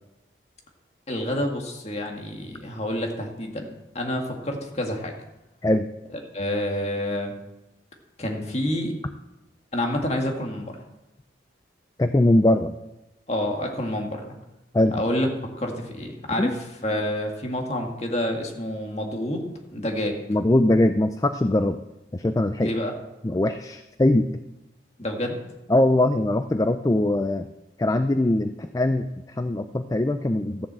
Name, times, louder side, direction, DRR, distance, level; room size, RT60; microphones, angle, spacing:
voice 1, 1.1-3.7 3.9-5.1 6.3-7.3 8.2-8.9 9.7-10.8 13.3-14.3 14.9-15.3 15.6-16.5 16.8-19.4 19.7-20.2 22.6-22.9 25.0-25.4, left 1 dB, 35° left, 2 dB, 2.0 m, -28 dB
voice 2, 12.0-12.7 14.7-15.0 16.4-16.5 20.3-21.8 22.1-22.7 23.2-24.3 25.7-27.5 27.8-30.7, left 1 dB, 20° left, 9 dB, 0.4 m, -21 dB
14.0 x 7.3 x 7.6 m, 0.97 s
head